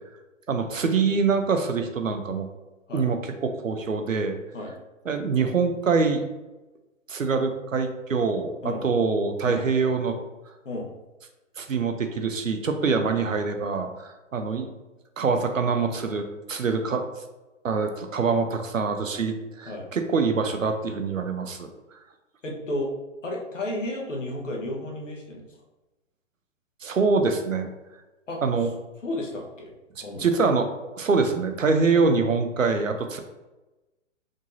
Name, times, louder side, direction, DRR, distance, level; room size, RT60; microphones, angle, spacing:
voice 1, 0.5-2.5 2.9-4.4 5.0-6.2 7.1-10.2 11.6-14.7 15.2-16.2 16.5-17.0 17.6-21.7 26.8-27.7 28.4-28.7 30.0-30.7 31.0-33.2, right 4 dB, 80° right, 6 dB, 0.8 m, -24 dB
voice 2, 22.4-22.9 23.2-25.4 28.3-28.4 29.0-29.7 30.0-30.3, left 1 dB, 70° left, -1 dB, 1.3 m, -32 dB
5.1 x 3.9 x 2.6 m, 1.1 s
figure-of-eight pair, 125°, 38 cm